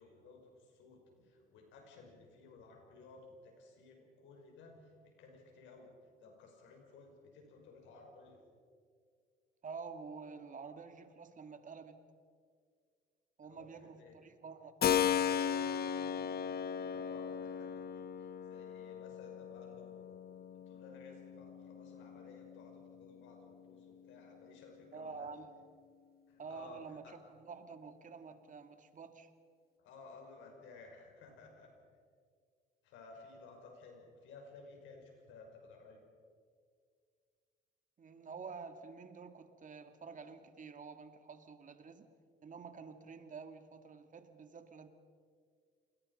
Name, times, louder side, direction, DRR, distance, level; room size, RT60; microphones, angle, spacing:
voice 1, 0.0-5.9 6.2-8.4 13.5-14.2 15.0-20.2 20.5-25.3 26.3-27.1 29.8-31.7 32.8-36.0, left 3 dB, 85° left, 2 dB, 5.6 m, -56 dB
voice 2, 9.6-12.0 13.4-14.8 24.9-25.5 26.4-29.3 38.0-42.1 42.4-44.9, right 5 dB, 45° right, 8 dB, 2.3 m, -49 dB
Keyboard (musical), 14.8-23.4, left 8 dB, 55° left, 0.9 m, -37 dB
28.5 x 21.0 x 5.5 m, 2.1 s
cardioid pair, 85°, 19 cm